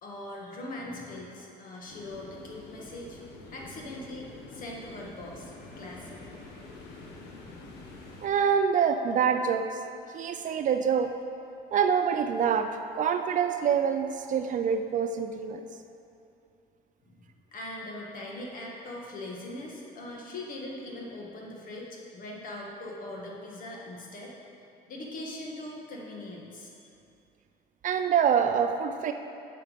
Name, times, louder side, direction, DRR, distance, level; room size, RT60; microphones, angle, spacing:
voice 1, 0.0-3.2 3.5-6.5 17.1-24.3 24.9-26.9, left 1 dB, 55° left, -2 dB, 1.8 m, -41 dB
sound 1, 1.9-8.3, left 2 dB, 80° left, 1.2 m, -47 dB
voice 2, 8.2-9.7 10.1-11.1 11.7-12.7 12.9-15.6 27.8-29.1, right 7 dB, 50° right, 7 dB, 0.5 m, -25 dB
8.7 x 6.0 x 5.2 m, 2.7 s
cardioid pair, 110°, 17 cm